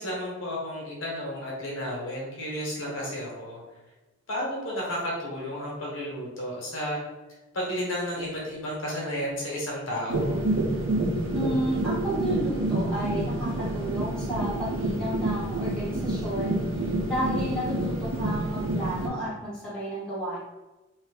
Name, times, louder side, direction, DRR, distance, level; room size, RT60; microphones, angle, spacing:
voice 1, 0.0-3.6 4.3-7.0 7.5-10.4, equal, 75° left, -4 dB, 1.2 m, -32 dB
sound 1, 10.1-19.1, right 2 dB, 75° right, 0.8 m, -28 dB
voice 2, 11.3-16.6 17.0-20.4, right 1 dB, 5° left, -10 dB, 1.4 m, -31 dB
3.1 x 2.7 x 3.4 m, 1.1 s
head